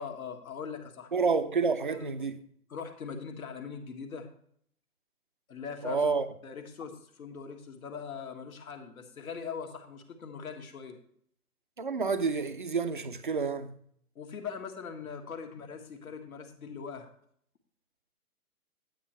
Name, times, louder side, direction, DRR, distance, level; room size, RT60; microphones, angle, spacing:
voice 1, 0.0-1.1 1.9-2.1 2.7-4.3 5.5-6.1 6.4-11.0 14.1-17.1, left 6 dB, 65° left, 1.6 m, -41 dB
voice 2, 1.1-2.4 5.8-6.3 11.8-13.7, right 5 dB, 35° right, 0.4 m, -29 dB
9.1 x 8.9 x 3.0 m
hypercardioid pair, 150°, 46 cm